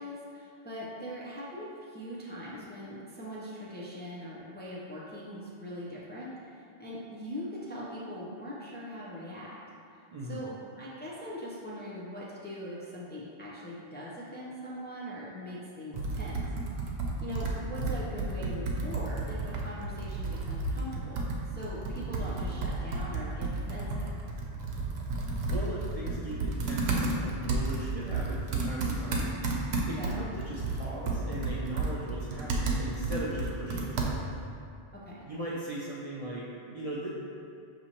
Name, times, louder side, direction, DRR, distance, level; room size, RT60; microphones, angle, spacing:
voice 1, 0.0-9.6 9.9-16.4 17.2-21.3 21.5-24.1 30.0-30.3 34.9-35.3, equal, 15° left, -7 dB, 0.4 m, -41 dB
voice 2, 10.1-10.5 25.2-34.2 35.3-37.1, right 1 dB, 50° right, -6 dB, 0.4 m, -39 dB
Computer keyboard, 15.9-34.5, right 3 dB, 90° right, 0.8 m, -32 dB
5.9 x 2.8 x 2.9 m, 2.4 s
omnidirectional pair, 1.0 m